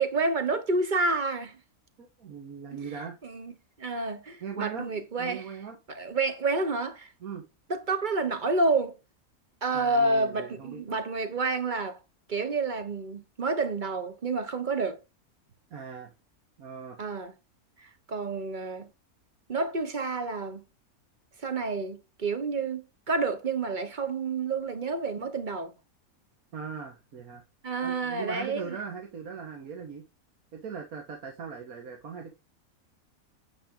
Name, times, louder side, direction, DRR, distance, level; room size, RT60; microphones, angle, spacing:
voice 1, 0.0-1.6 3.2-3.5 3.8-5.4 5.9-7.1 7.7-9.0 9.6-12.0 12.3-15.0 17.0-17.3 17.8-18.9 19.5-20.6 21.4-25.7 27.6-28.8, right 3 dB, 35° right, 1.1 m, -29 dB
voice 2, 2.0-3.2 4.4-5.8 7.2-7.4 9.7-10.8 15.7-16.1 16.6-17.0 26.5-27.4 27.8-30.0 30.5-32.3, right 6 dB, 75° right, 1.8 m, -39 dB
8.8 x 5.3 x 3.8 m
omnidirectional pair, 1.5 m